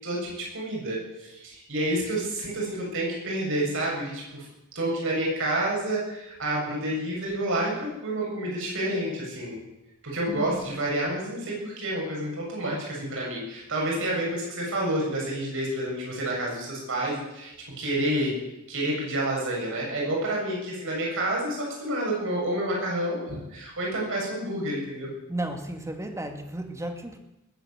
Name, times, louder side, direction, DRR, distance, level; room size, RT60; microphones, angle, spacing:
voice 1, 0.0-4.5 4.8-9.6 10.0-18.3 18.7-25.1, right 1 dB, 65° right, -2 dB, 7.2 m, -29 dB
voice 2, 25.3-27.2, right 1 dB, 15° right, 5 dB, 1.8 m, -33 dB
20.5 x 9.1 x 7.9 m, 0.91 s
head